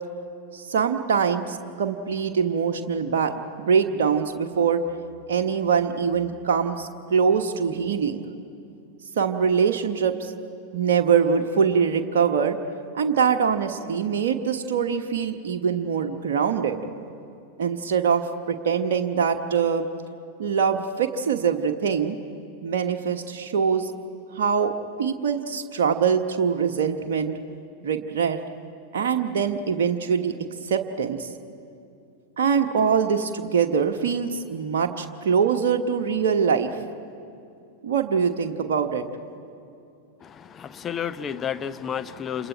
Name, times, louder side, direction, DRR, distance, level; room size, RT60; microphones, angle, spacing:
voice 1, 0.5-4.8 5.3-8.2 9.2-10.3 10.7-12.6 12.9-16.8 17.6-19.9 20.4-22.2 22.6-23.9 24.3-24.7 25.0-27.3 27.8-28.4 28.9-30.4 30.6-31.3 32.4-36.8 37.8-39.0, right 6 dB, 60° right, 4 dB, 1.2 m, -23 dB
voice 2, 40.5-42.5, left 8 dB, 25° left, 11 dB, 0.9 m, -31 dB
29.5 x 27.5 x 4.5 m, 2.6 s
figure-of-eight pair, 90°, 0 cm